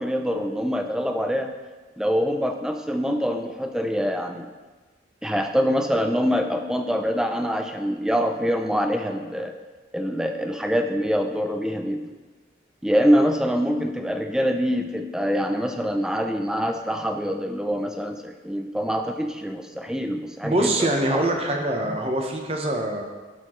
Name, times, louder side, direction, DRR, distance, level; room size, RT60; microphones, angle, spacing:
voice 1, 0.0-1.5 2.0-4.5 5.2-9.5 9.9-12.1 12.8-20.7 21.1-21.3 21.9-22.0, equal, 5° right, 5 dB, 0.3 m, -25 dB
voice 2, 20.4-23.0, right 1 dB, 30° right, 2 dB, 0.8 m, -24 dB
12.0 x 4.2 x 3.0 m, 1.3 s
head